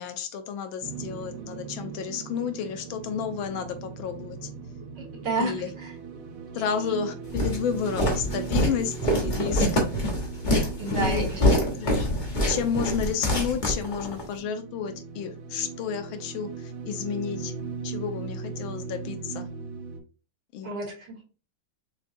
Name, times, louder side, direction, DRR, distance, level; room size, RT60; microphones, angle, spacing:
voice 1, 0.0-4.5 5.4-5.7 6.5-9.8 10.9-11.3 11.6-12.1 12.5-17.5 17.8-19.5 20.5-20.7, left 7 dB, 80° left, 8 dB, 1.4 m, -31 dB
sound 1, 0.8-20.0, right 5 dB, 80° right, 0.7 m, -39 dB
voice 2, 5.0-5.9 6.6-6.7 10.8-11.6 20.6-21.2, right 2 dB, 60° right, -2 dB, 2.1 m, -31 dB
Walk footsteps, 7.3-14.3, left 1 dB, 35° left, 0.8 m, -25 dB
6.3 x 2.2 x 2.6 m, 0.34 s
omnidirectional pair, 2.2 m